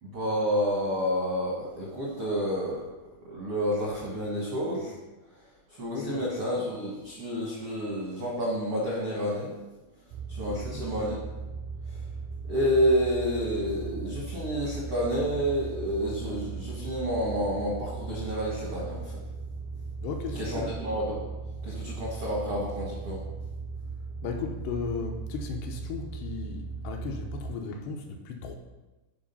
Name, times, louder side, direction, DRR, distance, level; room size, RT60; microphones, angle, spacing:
voice 1, 0.0-2.9 3.2-4.9 5.8-9.5 10.3-11.2 12.5-19.1 20.4-21.2 21.6-23.2, equal, 70° right, -4 dB, 1.4 m, -29 dB
voice 2, 5.9-6.3 10.5-10.8 20.0-20.8 24.2-28.6, left 5 dB, 75° left, 2 dB, 2.7 m, -36 dB
sound 1, 10.1-27.6, right 4 dB, 85° right, 2.9 m, -38 dB
10.0 x 4.9 x 5.4 m, 1.1 s
omnidirectional pair, 5.2 m